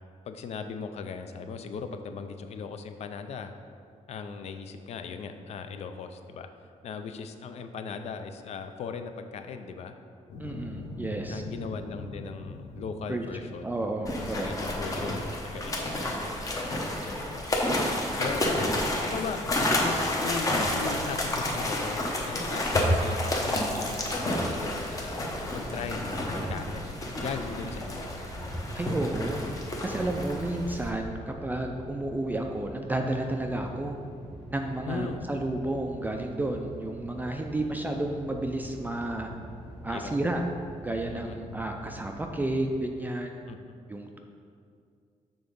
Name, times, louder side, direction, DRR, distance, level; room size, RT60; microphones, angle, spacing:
voice 1, 0.3-3.5 4.1-6.5 6.8-10.0 11.3-13.7 14.2-16.6 17.3-17.7 18.1-18.7 19.0-19.4 19.8-25.2 25.5-28.1 34.9-35.2 39.9-40.2 41.1-41.4 43.5-43.7, left 5 dB, 55° left, 8 dB, 0.4 m, -38 dB
sound 1, 10.3-28.0, left 2 dB, 75° left, 0.8 m, -45 dB
voice 2, 10.4-11.4 13.1-13.2 13.6-14.5 28.7-29.4 29.8-34.0 34.5-39.3 39.8-40.4 40.8-43.4 43.9-44.2, right 1 dB, 15° right, 3 dB, 0.3 m, -31 dB
sound 2, 14.0-30.9, left 1 dB, 25° left, 0.8 m, -30 dB
sound 3, 24.9-42.7, equal, 10° left, 1.6 m, -44 dB
7.0 x 3.8 x 5.3 m, 2.3 s
wide cardioid pair, 160°, 13 cm